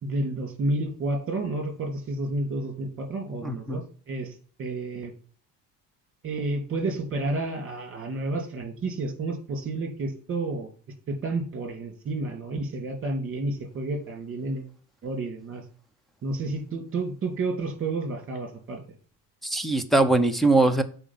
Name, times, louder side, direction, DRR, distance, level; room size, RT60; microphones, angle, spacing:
voice 1, 0.0-5.1 6.2-10.7 11.1-14.7 15.0-15.6 16.2-18.8, right 2 dB, 30° right, 5 dB, 2.4 m, -30 dB
voice 2, 3.4-3.8 19.4-20.8, right 2 dB, ahead, 9 dB, 0.6 m, -21 dB
7.1 x 5.1 x 5.5 m, 0.42 s
cardioid pair, 155°, 43 cm